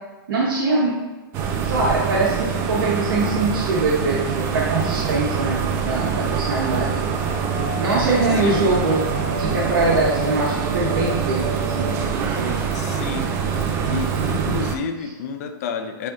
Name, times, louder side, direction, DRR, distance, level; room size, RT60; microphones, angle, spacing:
voice 1, 0.3-1.0 1.6-7.0 7.8-9.0 9.4-12.6, right 3 dB, 70° right, -4 dB, 1.3 m, -23 dB
sound 1, 1.3-14.8, right 6 dB, 20° right, 0.4 m, -25 dB
sound 2, 5.9-12.8 13.1-13.2 13.8-14.6, right 2 dB, 50° right, 1.0 m, -32 dB
voice 2, 8.2-8.8 12.7-13.3 13.9-16.1, left 5 dB, 45° left, 6 dB, 0.5 m, -30 dB
7.7 x 3.4 x 3.9 m, 1.2 s
hypercardioid pair, 165°, 12 cm